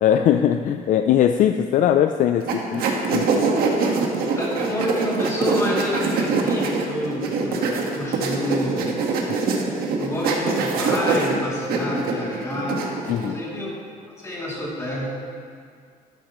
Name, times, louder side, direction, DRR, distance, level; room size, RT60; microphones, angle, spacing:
voice 1, 0.0-2.8 3.1-3.3 13.1-13.4, left 10 dB, 55° left, 7 dB, 0.4 m, -20 dB
sound 1, 2.5-13.3, right 4 dB, 75° right, 1.5 m, -23 dB
voice 2, 4.4-8.9 9.3-9.4 9.9-13.8 14.2-15.0, left 1 dB, 20° left, -6 dB, 2.7 m, -28 dB
13.0 x 12.0 x 3.0 m, 2.1 s
cardioid pair, 170°, 16 cm